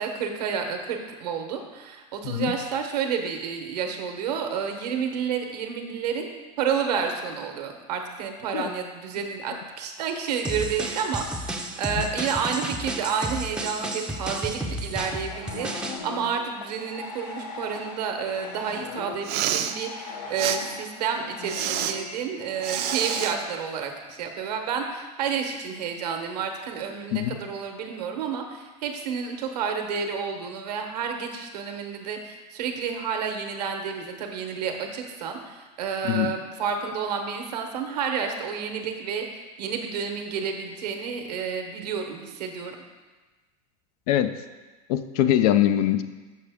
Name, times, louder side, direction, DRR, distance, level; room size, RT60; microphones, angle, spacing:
voice 1, 0.0-6.3 6.6-42.8, right 6 dB, 85° right, 4 dB, 1.0 m, -30 dB
sound 1, 10.4-16.0, right 1 dB, 5° right, 0.5 m, -32 dB
sound 2, 15.0-23.3, left 4 dB, 90° left, 1.0 m, -39 dB
Respiratory sounds, 19.1-19.7 20.4-20.6 21.5-21.9 22.6-23.3, right 11 dB, 55° right, 0.5 m, -28 dB
voice 2, 44.9-46.0, left 12 dB, 70° left, 10 dB, 0.5 m, -22 dB
6.4 x 5.7 x 3.5 m, 1.3 s
supercardioid pair, 110°, 20 cm